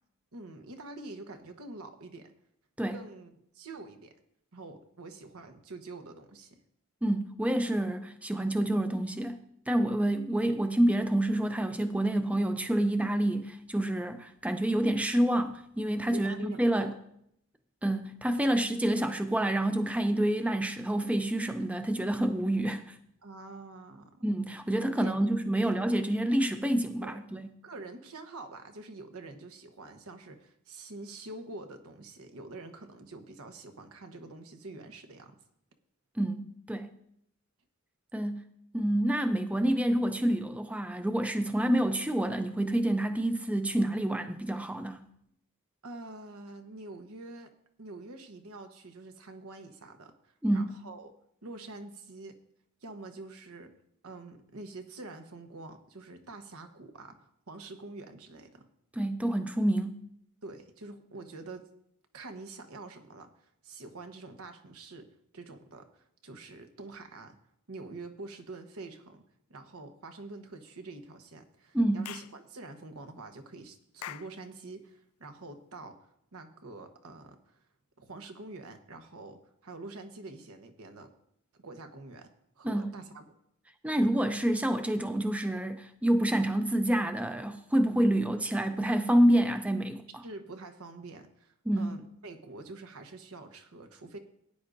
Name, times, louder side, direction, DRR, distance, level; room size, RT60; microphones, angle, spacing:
voice 1, 0.3-2.3 2.9-4.1 4.5-6.6 16.1-16.9 18.4-18.6 23.2-24.2 25.0-25.3 27.0-27.2 27.6-35.4 45.8-47.5 47.8-50.1 50.5-51.1 51.4-52.4 52.8-53.7 54.0-58.7 60.4-61.7 62.1-63.3 63.6-65.1 65.3-67.4 67.7-69.2 69.5-77.6 78.0-81.1 81.5-82.3 82.6-83.3 84.0-84.1 90.2-94.2, right 2 dB, 85° right, 1.1 m, -46 dB
voice 2, 7.0-16.9 17.8-23.0 24.2-27.5 36.2-36.9 38.1-38.4 38.7-45.0 50.4-50.7 58.9-60.0 71.7-72.1 82.6-82.9 83.8-90.2 91.7-92.0, right 1 dB, 5° right, 0.4 m, -28 dB
Clapping / Chirp tweet, 72.0-72.4 74.0-74.4, left 11 dB, 85° left, 0.4 m, -42 dB
17.0 x 9.7 x 2.6 m
head